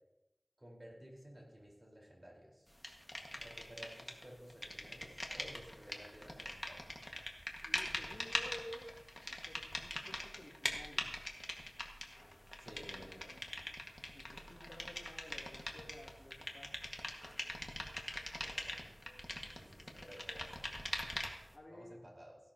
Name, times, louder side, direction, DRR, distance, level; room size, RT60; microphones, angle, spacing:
voice 1, 0.6-2.7 3.3-6.8 12.6-13.3 18.4-18.9 19.5-20.7 21.7-22.4, equal, 35° right, -3 dB, 4.5 m, -55 dB
sound 1, 2.8-4.2 4.5-21.5, left 1 dB, 20° left, 1.8 m, -43 dB
voice 2, 7.6-8.9 9.4-11.1 13.9-16.7 21.5-22.0, left 1 dB, 65° left, -3 dB, 3.2 m, -53 dB
16.0 x 11.5 x 2.9 m, 0.97 s
wide cardioid pair, 55°, 0 cm